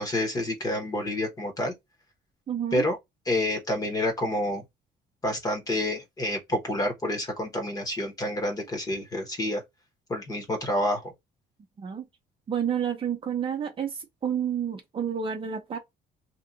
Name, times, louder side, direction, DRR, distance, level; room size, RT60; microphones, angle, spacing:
voice 1, 0.0-1.7 2.7-3.0 3.3-4.6 5.2-9.6 10.1-11.1, left 1 dB, 20° left, 1.1 m, -28 dB
voice 2, 2.5-2.9 11.8-12.1 12.5-15.8, right 8 dB, 30° right, 0.7 m, -30 dB
2.9 x 2.4 x 3.7 m
cardioid pair, 175°, 17 cm